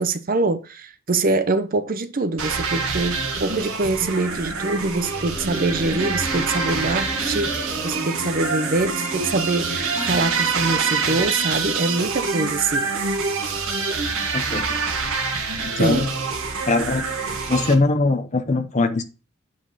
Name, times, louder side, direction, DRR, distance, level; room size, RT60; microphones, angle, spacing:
voice 1, 0.0-12.9 15.8-16.1, right 3 dB, 45° right, 0.6 m, -24 dB
sound 1, 2.4-17.7, right 4 dB, 90° right, 1.5 m, -26 dB
sound 2, 5.3-11.4, right 1 dB, 20° left, 3.3 m, -35 dB
voice 2, 14.3-14.8 15.6-16.1 16.7-17.1 17.5-19.0, left 3 dB, 35° left, 0.8 m, -21 dB
8.2 x 4.9 x 4.0 m
head